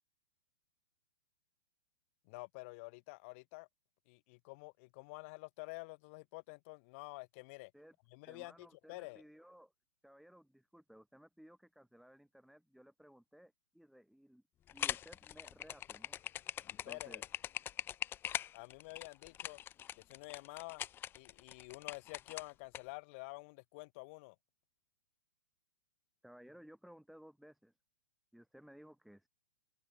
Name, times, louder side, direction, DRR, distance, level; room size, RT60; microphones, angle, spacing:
voice 1, 2.3-3.7 4.1-7.7 8.1-9.2 16.8-17.2 18.5-19.6 19.9-20.8 21.2-24.4, left 27 dB, 40° left, 2.2 m, -49 dB
voice 2, 8.3-9.7 10.0-14.4 14.7-16.2 16.9-17.2 26.2-27.7 28.3-29.3, equal, ahead, 2.6 m, -58 dB
sound 1, 14.7-22.8, left 11 dB, 20° left, 0.6 m, -42 dB
figure-of-eight pair, 110°, 10 cm